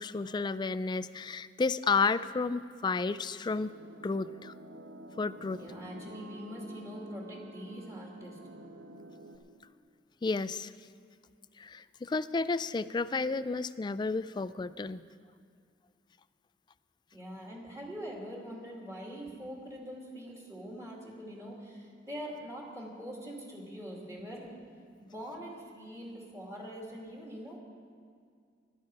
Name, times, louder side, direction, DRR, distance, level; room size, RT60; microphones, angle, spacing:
voice 1, 0.0-3.7 4.0-4.5 5.2-5.6 10.2-10.7 11.6-15.0, left 4 dB, 25° left, 14 dB, 0.3 m, -31 dB
sound 1, 3.6-9.4, right 1 dB, 65° right, 1.0 m, -48 dB
voice 2, 5.5-8.4 17.1-24.6 25.0-27.6, equal, 15° right, -2 dB, 2.6 m, -43 dB
16.0 x 12.0 x 4.8 m, 2.2 s
head